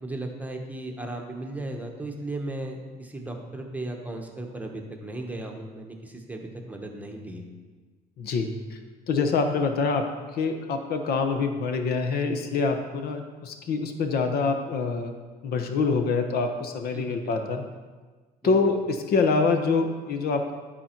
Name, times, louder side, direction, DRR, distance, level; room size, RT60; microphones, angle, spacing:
voice 1, 0.0-7.5 16.9-17.3 18.4-18.5, right 2 dB, 10° right, 2 dB, 1.0 m, -36 dB
voice 2, 8.2-8.8 9.1-10.1 10.3-15.2 15.4-17.6 18.4-20.5, left 4 dB, 65° left, 6 dB, 0.9 m, -25 dB
11.5 x 4.3 x 4.4 m, 1.4 s
cardioid pair, 110°, 17 cm